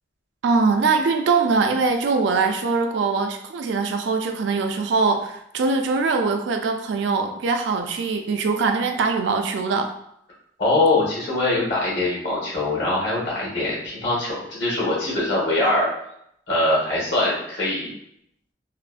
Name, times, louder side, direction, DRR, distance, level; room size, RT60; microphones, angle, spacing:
voice 1, 0.4-9.9, right 4 dB, 75° right, 5 dB, 0.3 m, -22 dB
voice 2, 10.6-15.9 16.5-17.9, left 2 dB, 70° left, -5 dB, 1.3 m, -22 dB
3.0 x 2.0 x 2.4 m, 0.75 s
head